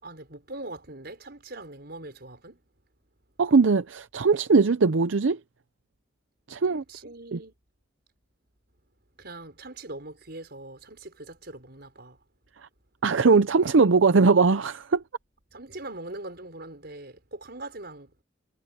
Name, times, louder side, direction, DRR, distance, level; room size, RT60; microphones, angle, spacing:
voice 1, 0.0-2.6 6.7-7.5 9.2-12.2 15.5-18.1, right 2 dB, 55° right, 5.9 m, -41 dB
voice 2, 3.4-5.4 6.5-6.8 7.3-7.4 13.0-15.0, right 4 dB, 85° right, 0.6 m, -20 dB
head